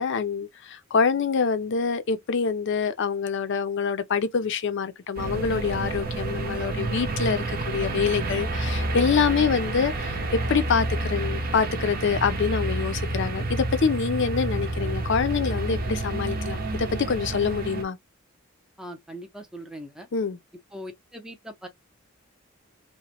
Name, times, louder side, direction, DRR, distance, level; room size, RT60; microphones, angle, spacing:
voice 1, 0.0-18.0 20.1-20.4, left 5 dB, 60° left, 0.5 m, -26 dB
sound 1, 5.2-17.8, right 2 dB, 45° right, 0.6 m, -29 dB
voice 2, 18.8-20.1 20.7-21.7, equal, 5° right, 0.5 m, -40 dB
2.9 x 2.1 x 2.8 m
head